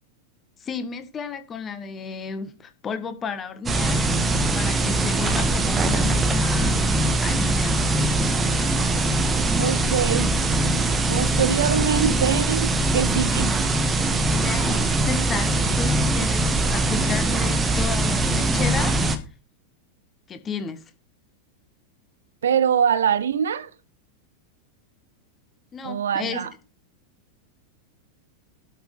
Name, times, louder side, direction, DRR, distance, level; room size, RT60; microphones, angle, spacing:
voice 1, 0.6-6.9 7.2-7.8 14.4-19.0 20.3-20.8 25.7-26.4, left 5 dB, 25° left, 1.7 m, -32 dB
sound 1, 3.7-19.2, right 2 dB, 15° right, 1.8 m, -22 dB
voice 2, 9.6-10.4 11.1-13.5 22.4-23.7 25.8-26.5, right 8 dB, 65° right, 0.8 m, -23 dB
12.0 x 6.5 x 5.7 m
figure-of-eight pair, 90°, 0 cm